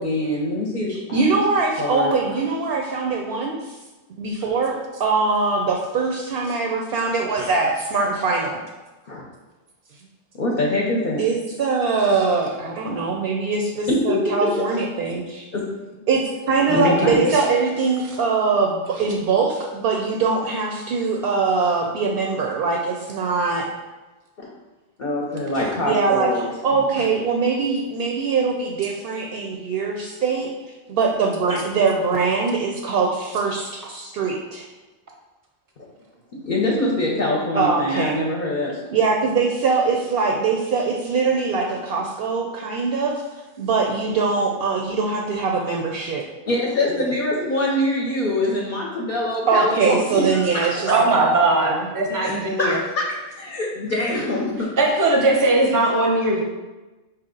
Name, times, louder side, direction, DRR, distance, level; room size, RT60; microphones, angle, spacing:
voice 1, 0.0-1.4 1.8-2.1 7.4-7.7 9.1-9.2 10.3-11.2 13.9-14.3 15.5-15.6 16.7-17.1 24.4-24.5 25.0-27.0 31.5-31.6 36.5-38.8 46.5-50.8 52.2-53.0 53.3-54.7, left 1 dB, 50° left, -3 dB, 0.8 m, -24 dB
voice 2, 0.9-3.8 4.2-8.6 11.2-15.5 16.1-16.2 16.5-23.6 25.8-26.3 26.6-30.5 30.9-34.7 37.5-38.3 38.9-43.2 43.6-46.2 49.5-51.9, right 4 dB, 65° right, 0 dB, 0.7 m, -22 dB
voice 3, 16.7-17.4 50.9-52.8 54.8-56.4, right 2 dB, 20° right, -1 dB, 0.6 m, -20 dB
4.5 x 2.8 x 3.7 m, 1.2 s
omnidirectional pair, 1.2 m